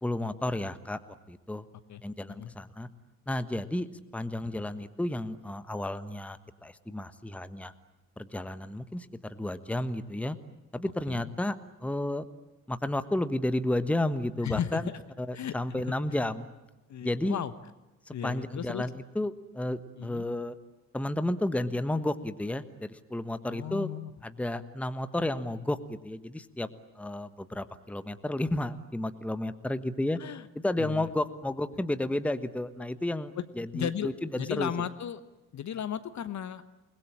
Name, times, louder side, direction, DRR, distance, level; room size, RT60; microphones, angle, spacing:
voice 1, 0.0-1.6 2.0-2.9 3.3-3.9 4.1-7.7 8.2-10.4 10.7-11.6 11.8-12.2 12.7-14.9 15.2-16.5 17.0-17.4 18.1-20.5 20.9-23.9 24.2-26.7 27.0-30.2 30.6-34.7, left 1 dB, 5° left, 12 dB, 1.3 m, -32 dB
voice 2, 14.4-15.0 15.3-15.9 16.9-17.5 18.1-18.8 20.0-20.3 23.4-24.1 30.2-30.5 30.8-31.1 33.4-33.5 33.7-34.1 34.3-35.2 35.5-36.6, left 9 dB, 35° left, 13 dB, 1.2 m, -35 dB
29.0 x 21.0 x 8.7 m, 1.1 s
figure-of-eight pair, 50°, 47 cm